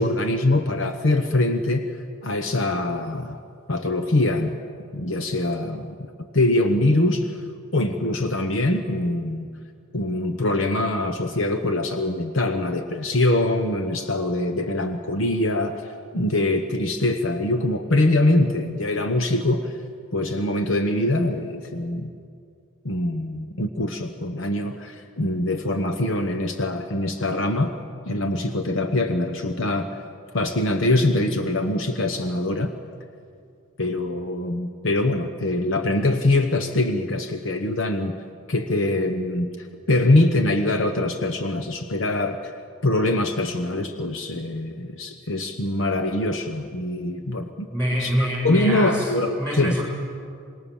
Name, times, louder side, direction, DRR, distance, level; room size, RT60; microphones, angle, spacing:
voice 1, 0.0-1.9 2.2-3.4 3.7-4.5 4.9-5.9 6.3-7.4 7.7-9.5 9.9-19.8 20.1-22.1 22.8-27.7 28.1-30.0 30.3-32.7 33.8-38.1 38.5-42.5 42.8-47.7 48.0-48.2 48.4-49.7, left 2 dB, 60° left, 5 dB, 1.0 m, -23 dB
voice 2, 47.7-49.8, equal, 10° left, -3 dB, 7.6 m, -25 dB
26.0 x 21.0 x 7.1 m, 2.4 s
head